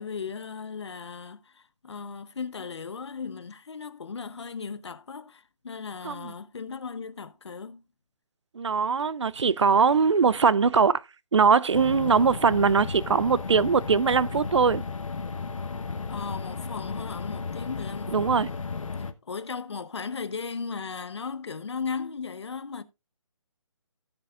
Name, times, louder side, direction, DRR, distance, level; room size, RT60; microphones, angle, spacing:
voice 1, 0.0-7.8 16.1-18.4 19.0-22.8, left 5 dB, 55° left, 0.9 m, -36 dB
voice 2, 8.5-11.0 11.3-14.8 18.1-18.5, right 5 dB, 60° right, 0.5 m, -21 dB
sound 1, 11.7-19.1, left 4 dB, 70° left, 1.2 m, -34 dB
16.5 x 6.8 x 2.5 m
hypercardioid pair, 175°, 17 cm